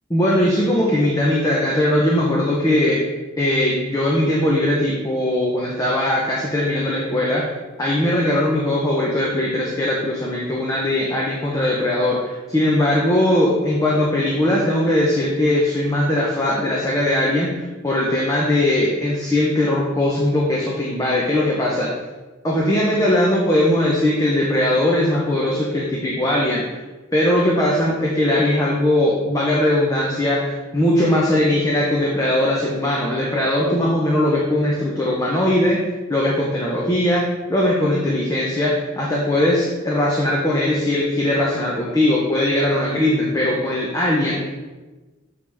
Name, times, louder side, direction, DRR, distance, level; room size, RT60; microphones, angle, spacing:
voice 1, 0.1-3.0 3.4-7.5 7.8-21.9 22.4-26.8 27.1-35.8 36.1-44.5, left 1 dB, 15° left, -4 dB, 0.8 m, -20 dB
6.8 x 5.1 x 3.4 m, 1.2 s
head